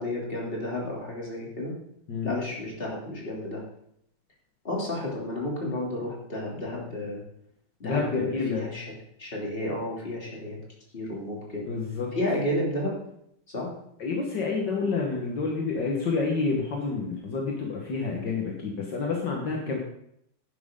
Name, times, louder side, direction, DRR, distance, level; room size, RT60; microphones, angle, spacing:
voice 1, 0.0-1.7 2.2-3.6 4.6-7.2 7.8-10.6 10.9-11.7 12.1-13.0 13.5-13.7 19.6-19.7, left 1 dB, 30° left, -3 dB, 3.3 m, -32 dB
voice 2, 7.8-8.7 11.7-12.1 14.0-19.8, left 4 dB, 65° left, -1 dB, 2.1 m, -28 dB
11.0 x 10.5 x 3.8 m, 0.73 s
omnidirectional pair, 2.1 m